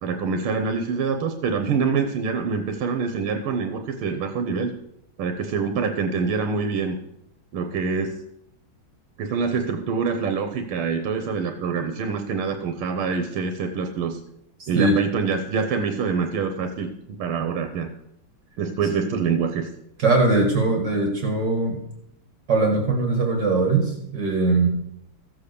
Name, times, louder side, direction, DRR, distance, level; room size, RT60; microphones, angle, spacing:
voice 1, 0.0-4.7 5.2-7.0 7.5-8.2 9.2-14.2 14.7-17.9 18.6-19.7, right 5 dB, 90° right, 6 dB, 1.8 m, -25 dB
voice 2, 14.6-15.0 20.0-21.8 22.5-24.7, right 3 dB, 55° right, 2 dB, 2.6 m, -21 dB
15.0 x 7.6 x 6.8 m, 0.78 s
omnidirectional pair, 2.3 m